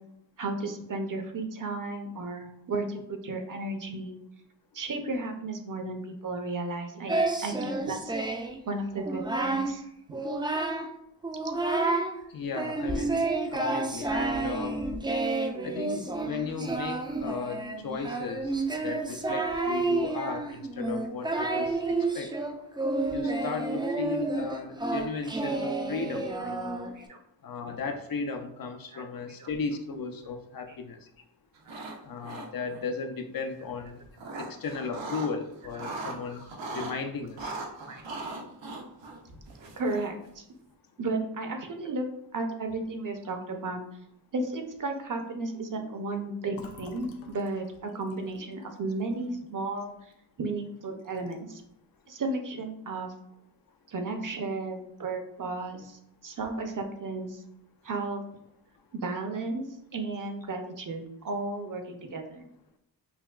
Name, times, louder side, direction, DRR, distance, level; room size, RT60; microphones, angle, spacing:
voice 1, 0.4-4.2 4.7-8.1 8.6-9.8 10.1-10.2 24.5-24.6 27.0-27.2 28.9-29.0 29.4-29.5 30.7-30.8 34.3-34.4 36.3-36.4 37.9-38.0 39.8-40.4 41.0-42.1 42.3-43.8 44.3-49.9 50.4-51.6 52.1-53.1 53.9-57.4 57.8-58.2 58.9-59.7 59.9-62.4, right 2 dB, 45° right, 5 dB, 0.6 m, -34 dB
Singing, 7.1-8.6 9.0-9.7 10.1-10.9 11.2-12.1 12.5-27.0, right 2 dB, 10° right, 0.3 m, -30 dB
voice 2, 12.3-13.2 13.5-14.8 15.6-22.3 23.1-26.8 27.4-31.1 32.0-34.0 34.4-37.6, left 4 dB, 50° left, 6 dB, 0.5 m, -36 dB
sound 1, 31.6-32.0 32.2-32.8 33.8-35.3 35.6-36.9 37.4-40.3, right 3 dB, 80° right, 0.8 m, -39 dB
Fill (with liquid), 46.5-50.2 50.5-50.7 51.0-51.6, left 3 dB, 90° left, 0.6 m, -51 dB
5.8 x 2.2 x 2.3 m, 0.79 s
cardioid pair, 75°, 44 cm